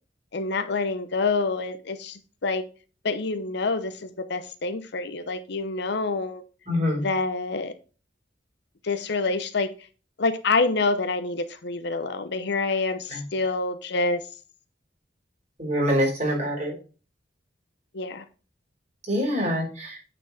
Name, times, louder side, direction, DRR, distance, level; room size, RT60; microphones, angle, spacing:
voice 1, 0.3-2.6 3.0-6.4 7.0-7.7 8.8-9.7 10.2-14.2 17.9-18.2 19.1-19.3, left 3 dB, 65° left, 10 dB, 0.8 m, -27 dB
voice 2, 6.7-7.0 13.1-13.2 15.6-16.8 19.1-20.0, equal, 40° right, -2 dB, 3.6 m, -25 dB
9.0 x 4.5 x 4.1 m, 0.35 s
head